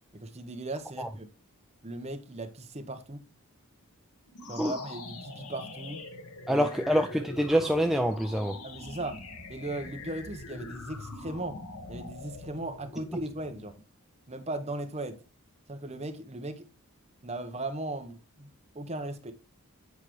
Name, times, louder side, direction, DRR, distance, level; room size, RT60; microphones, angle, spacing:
voice 1, 0.1-1.3 1.8-3.2 4.5-6.0 6.5-6.9 8.6-9.2 9.5-11.6 11.9-13.8 14.3-15.2 15.7-16.7 17.2-18.5 18.7-19.3, right 2 dB, 30° right, 1.0 m, -37 dB
sound 1, 4.3-13.8, left 2 dB, 80° left, 1.3 m, -43 dB
voice 2, 6.5-8.6, equal, ahead, 0.3 m, -26 dB
8.2 x 4.9 x 3.1 m
head